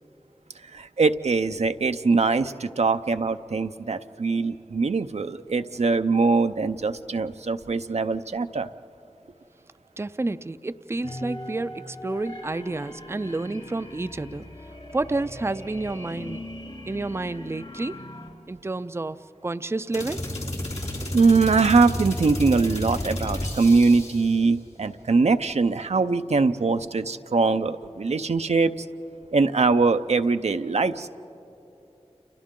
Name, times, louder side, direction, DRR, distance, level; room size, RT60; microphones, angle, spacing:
voice 1, 0.7-8.7 21.1-28.7 29.3-31.1, right 4 dB, 80° right, 9 dB, 0.6 m, -22 dB
voice 2, 10.0-14.5 14.9-16.4 16.9-18.0 18.5-19.2 19.4-20.3, right 2 dB, 25° right, 12 dB, 0.4 m, -30 dB
sound 1, 11.0-18.3, left 1 dB, 60° left, 3.4 m, -40 dB
sound 2, 19.9-24.4, left 1 dB, 80° left, 3.2 m, -31 dB
30.0 x 28.5 x 3.7 m, 2.9 s
wide cardioid pair, 50°, 11 cm